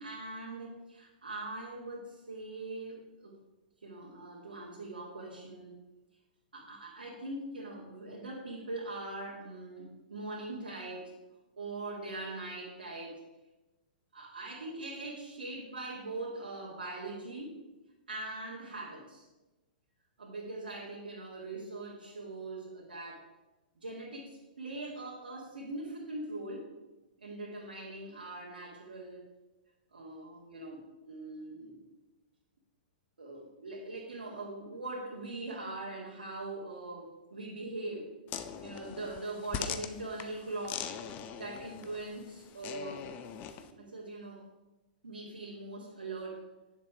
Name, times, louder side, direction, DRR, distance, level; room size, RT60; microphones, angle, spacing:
voice 1, 0.0-3.4 3.8-5.8 6.5-11.1 11.6-13.2 14.1-17.6 18.1-19.3 20.2-23.3 23.8-26.7 27.2-29.3 29.9-31.8 33.2-38.1 38.6-40.9 41.3-43.1 43.6-44.5 45.0-46.4, right 2 dB, 85° right, -5 dB, 2.2 m, -42 dB
sound 1, 38.3-43.7, left 8 dB, 35° left, 0.8 m, -42 dB
10.0 x 7.3 x 5.1 m, 1.1 s
hypercardioid pair, 115°, 5 cm